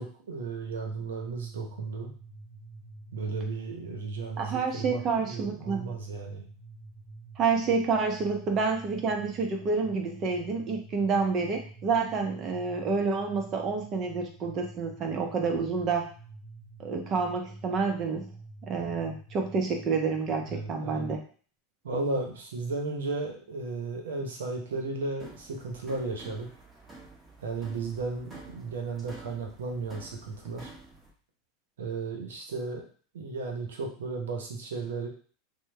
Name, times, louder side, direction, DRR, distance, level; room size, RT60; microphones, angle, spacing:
voice 1, 0.0-2.1 3.1-6.5 20.5-21.2 21.8-26.5 27.4-30.7 31.8-32.8 33.1-35.1, right 3 dB, 85° right, 2 dB, 0.8 m, -34 dB
sound 1, 1.0-20.6, right 2 dB, 45° left, 0.6 m, -48 dB
voice 2, 4.4-5.9 7.4-16.1 16.8-18.3 18.7-21.2, right 4 dB, 40° right, 3 dB, 0.8 m, -28 dB
sound 2, 25.2-31.1, right 3 dB, 20° right, 1.1 m, -50 dB
3.1 x 2.2 x 3.3 m, 0.42 s
hypercardioid pair, 100°, 0 cm